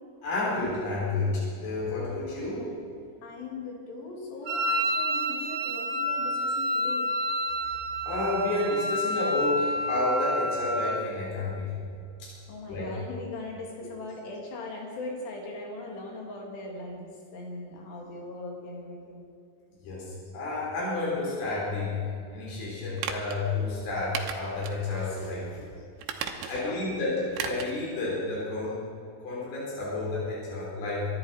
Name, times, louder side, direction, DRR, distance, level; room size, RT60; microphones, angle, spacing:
voice 1, 0.2-2.7 8.1-11.8 12.2-12.3 12.7-13.0 19.8-22.0 22.3-25.7 26.5-28.8 29.2-31.1, left 2 dB, 70° left, -6 dB, 5.9 m, -30 dB
voice 2, 3.2-7.1 12.5-19.2 26.4-26.8, left 2 dB, 85° left, -1 dB, 4.6 m, -40 dB
Wind instrument woodwind instrument, 4.4-11.0, equal, 65° right, 2.1 m, -29 dB
sound 1, 23.0-23.4 24.1-24.8 25.2-25.3 26.0-26.7 27.3-27.8 28.1-28.2, right 8 dB, 85° right, 3.0 m, -35 dB
23.5 x 11.5 x 4.4 m, 2.3 s
omnidirectional pair, 4.7 m